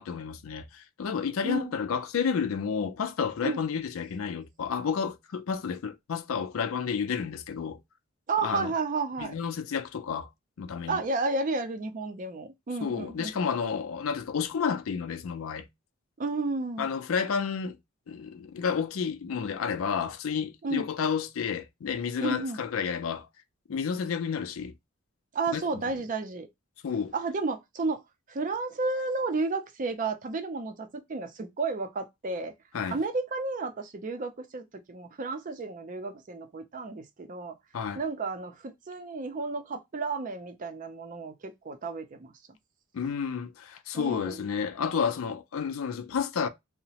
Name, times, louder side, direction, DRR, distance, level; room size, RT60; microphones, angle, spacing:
voice 1, 0.0-7.8 8.4-8.7 9.2-10.3 10.6-11.0 12.8-15.7 16.8-17.8 18.1-23.3 23.7-24.8 25.5-25.9 26.8-27.1 32.7-33.0 37.7-38.0 42.9-46.5, left 6 dB, 85° left, 0.4 m, -31 dB
voice 2, 8.3-9.3 10.9-13.3 16.2-16.9 20.6-20.8 22.2-22.6 25.3-26.5 27.1-28.0 28.3-32.5 32.9-37.6 37.9-42.3 43.9-44.4, right 3 dB, 40° right, 0.4 m, -32 dB
2.8 x 2.1 x 2.8 m
head